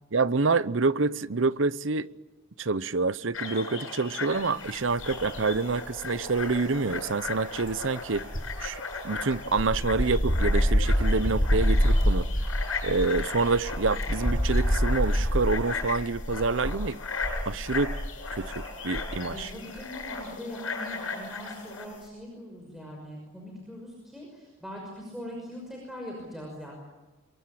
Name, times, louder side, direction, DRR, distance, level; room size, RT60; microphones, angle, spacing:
voice 1, 0.1-2.1 2.6-8.3 8.6-12.3 12.8-17.0 17.5-18.0 18.3-19.5, right 3 dB, 65° right, 0.8 m, -27 dB
sound 1, 3.3-21.9, left 4 dB, 75° left, 7.7 m, -37 dB
sound 2, 4.9-5.7 6.0-19.5 19.8-20.0, equal, 40° left, 4.7 m, -27 dB
voice 2, 19.3-26.7, equal, ahead, 5.8 m, -41 dB
27.5 x 23.0 x 8.7 m
head